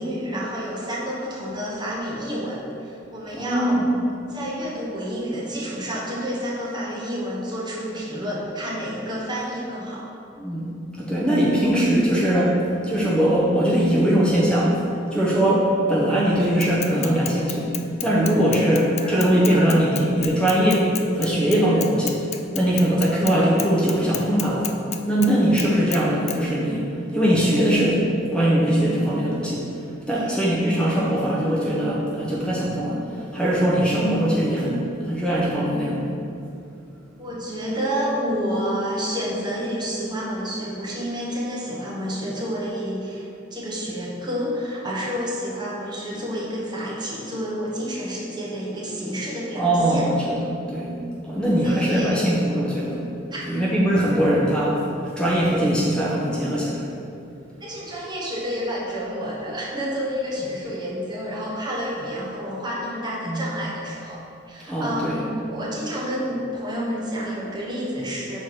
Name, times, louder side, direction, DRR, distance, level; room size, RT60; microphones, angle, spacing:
voice 1, 0.0-3.8 4.3-10.1 11.7-11.8 18.1-18.4 19.0-19.2 19.5-19.8 30.1-30.5 37.2-50.0 51.6-52.3 53.3-53.5 57.6-64.2 64.5-68.4, equal, 25° right, -4 dB, 1.0 m, -29 dB
voice 2, 3.3-3.9 10.4-10.7 11.0-14.8 15.1-17.7 18.0-22.2 22.5-24.7 25.1-28.0 28.3-29.7 30.1-33.0 33.3-36.2 49.6-50.4 50.7-50.9 51.2-53.0 53.4-56.8 63.3-63.4 64.7-65.2, right 1 dB, 5° left, -7 dB, 0.8 m, -21 dB
Bicycle / Mechanisms, 16.6-23.3 23.6-25.3 25.6-26.0 26.3-26.4, left 10 dB, 35° left, 0.3 m, -31 dB
6.1 x 4.3 x 4.8 m, 2.7 s
head